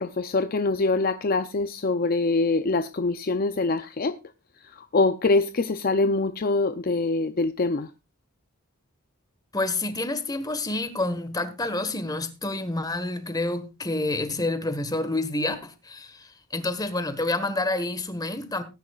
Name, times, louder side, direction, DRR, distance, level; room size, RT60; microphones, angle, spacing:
voice 1, 0.0-4.2 4.6-7.9, left 3 dB, 45° left, 0.5 m, -24 dB
voice 2, 9.5-18.6, left 2 dB, 20° left, 1.4 m, -28 dB
19.5 x 10.5 x 2.4 m
head